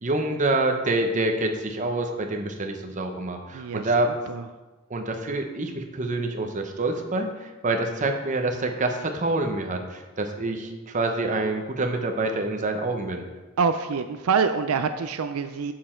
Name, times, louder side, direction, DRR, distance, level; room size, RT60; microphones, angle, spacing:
voice 1, 0.0-4.1 4.9-13.2, right 2 dB, 35° right, 4 dB, 0.8 m, -26 dB
voice 2, 3.5-3.9 4.3-4.4 13.6-15.7, right 5 dB, 80° right, 9 dB, 0.4 m, -25 dB
7.6 x 6.7 x 4.4 m, 1.2 s
head